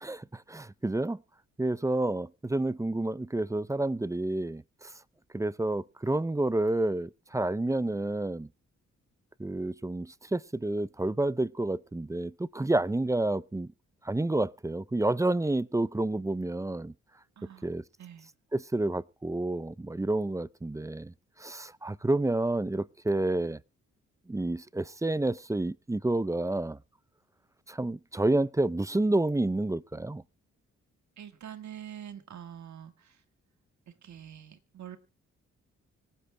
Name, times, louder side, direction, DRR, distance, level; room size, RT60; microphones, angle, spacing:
voice 1, 0.0-1.2 1.6-4.9 5.3-8.5 9.4-13.7 14.0-16.9 17.6-17.8 18.5-21.1 21.4-23.6 24.3-26.8 27.7-30.2, right 2 dB, 10° right, 0.5 m, -29 dB
voice 2, 17.4-17.7 18.0-18.3 31.2-33.2 33.9-35.0, right 9 dB, 65° right, 1.9 m, -45 dB
25.5 x 10.0 x 2.3 m
supercardioid pair, 55°, 31 cm